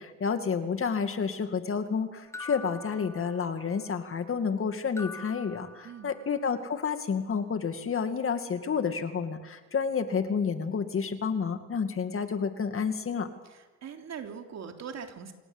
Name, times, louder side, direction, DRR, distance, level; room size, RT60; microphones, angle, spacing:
voice 1, 0.0-13.3, left 6 dB, 45° left, 8 dB, 2.4 m, -30 dB
sound 1, 2.3-3.8 5.0-6.4, left 3 dB, 10° left, 1.4 m, -44 dB
voice 2, 5.8-6.1 13.4-15.3, right 7 dB, 60° right, 5 dB, 3.3 m, -41 dB
27.5 x 17.5 x 8.1 m, 1.2 s
cardioid pair, 90°, 30 cm